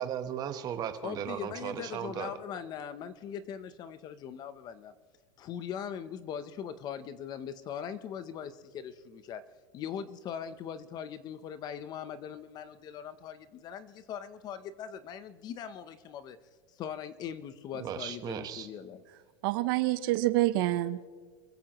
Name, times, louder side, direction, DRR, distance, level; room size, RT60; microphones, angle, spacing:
voice 1, 0.0-2.3 17.7-18.7, right 9 dB, 25° right, 9 dB, 1.1 m, -36 dB
voice 2, 1.0-4.9 5.4-9.4 9.7-16.4 16.8-19.0, left 8 dB, 25° left, 13 dB, 0.7 m, -40 dB
voice 3, 19.4-21.1, right 16 dB, 50° right, 13 dB, 0.7 m, -27 dB
27.0 x 15.0 x 3.0 m, 1.5 s
supercardioid pair, 160°, 15 cm